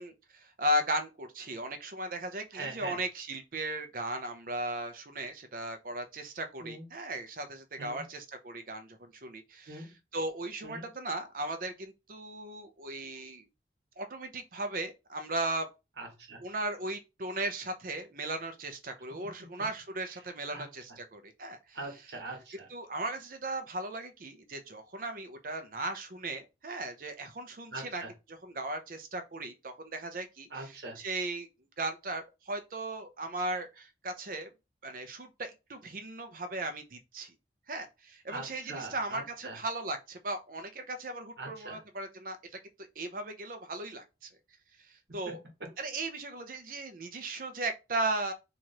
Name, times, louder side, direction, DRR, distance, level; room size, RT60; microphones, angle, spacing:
voice 1, 0.0-13.5 14.0-15.7 16.4-21.8 22.7-28.0 28.3-31.5 31.8-34.5 34.8-37.3 37.7-42.4 43.0-44.3 45.1-45.4 45.8-48.3, right 2 dB, 50° right, 0.7 m, -37 dB
voice 2, 2.5-3.0 6.6-6.9 7.8-8.0 9.7-10.0 10.6-10.9 16.0-16.4 19.1-19.5 20.5-20.7 21.7-22.7 27.7-28.1 30.5-31.0 38.3-39.6 41.4-41.8 45.1-45.7, right 2 dB, 70° right, 1.3 m, -42 dB
3.0 x 2.6 x 4.3 m
head